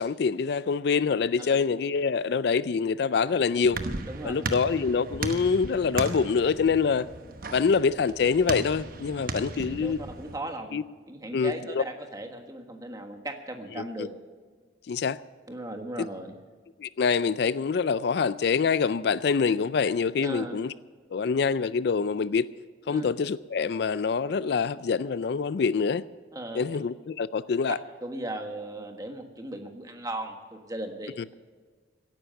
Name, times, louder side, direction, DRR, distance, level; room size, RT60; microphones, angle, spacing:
voice 1, 0.0-3.8 4.2-7.1 7.5-10.0 10.7-10.8 11.3-11.8 13.8-14.1 14.9-15.2 16.8-20.7 21.1-22.5 22.9-26.1 26.5-27.8, left 5 dB, 60° left, 0.4 m, -25 dB
sound 1, 3.1-10.4, right 3 dB, 50° right, 1.0 m, -36 dB
voice 2, 9.8-10.8 11.1-14.1 15.5-16.3 20.2-20.6 22.9-23.1 26.3-26.6 28.0-31.4, right 1 dB, 20° right, 1.5 m, -37 dB
17.0 x 10.5 x 6.5 m
head